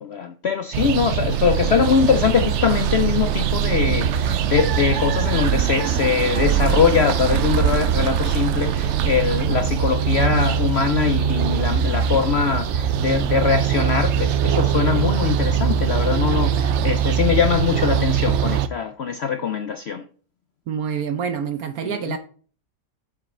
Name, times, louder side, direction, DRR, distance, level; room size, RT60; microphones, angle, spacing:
voice 1, 0.0-20.0 21.8-22.2, left 6 dB, 85° left, 0.5 m, -22 dB
sound 1, 0.7-18.7, right 8 dB, 80° right, 0.6 m, -22 dB
voice 2, 20.7-22.2, right 7 dB, 65° right, 1.1 m, -27 dB
7.3 x 7.1 x 4.3 m
omnidirectional pair, 1.8 m